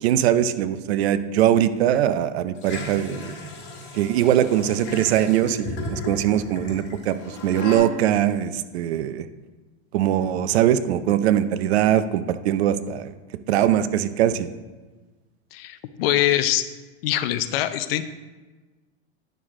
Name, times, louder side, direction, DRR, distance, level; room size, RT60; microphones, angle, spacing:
voice 1, 0.0-3.3 3.9-9.3 9.9-13.1 13.5-14.5, right 11 dB, 65° right, 12 dB, 0.6 m, -21 dB
sound 1, 2.6-7.8, left 3 dB, 30° left, 2.1 m, -35 dB
voice 2, 15.5-16.7 17.0-18.1, left 13 dB, 60° left, 12 dB, 0.6 m, -23 dB
9.1 x 6.4 x 3.7 m, 1.2 s
supercardioid pair, 145°, 34 cm